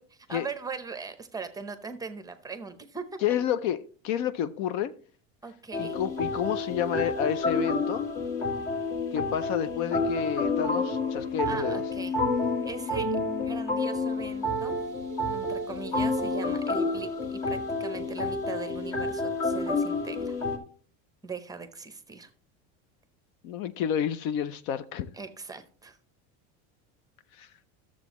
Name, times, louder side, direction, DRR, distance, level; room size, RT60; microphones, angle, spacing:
voice 1, 0.0-3.0 5.4-6.0 11.5-12.1 12.6-13.1 13.4-14.8 15.3-20.4 21.2-22.3 25.1-26.0, right 4 dB, 10° right, 0.7 m, -40 dB
voice 2, 3.2-4.9 5.8-8.0 9.1-11.8 23.4-25.1 27.4-27.5, left 9 dB, 60° left, 0.6 m, -30 dB
sound 1, 5.7-20.6, left 2 dB, 45° left, 1.8 m, -29 dB
12.0 x 7.3 x 3.0 m
supercardioid pair, 140°, 33 cm